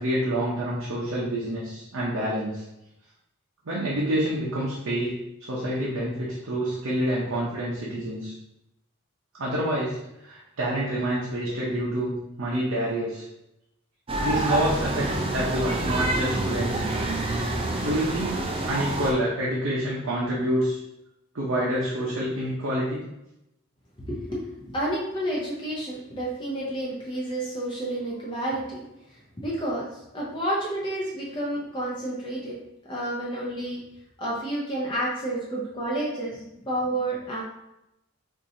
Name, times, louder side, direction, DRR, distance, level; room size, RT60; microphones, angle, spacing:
voice 1, 0.0-2.6 3.6-8.3 9.4-13.3 14.2-16.9 17.8-20.8 21.3-23.0, right 1 dB, 85° right, -6 dB, 0.8 m, -27 dB
sound 1, 14.1-19.1, right 2 dB, 25° right, 0.4 m, -27 dB
voice 2, 24.0-32.6 32.9-33.8 34.2-37.4, right 1 dB, 25° left, -5 dB, 0.6 m, -30 dB
4.5 x 2.7 x 2.7 m, 0.86 s
head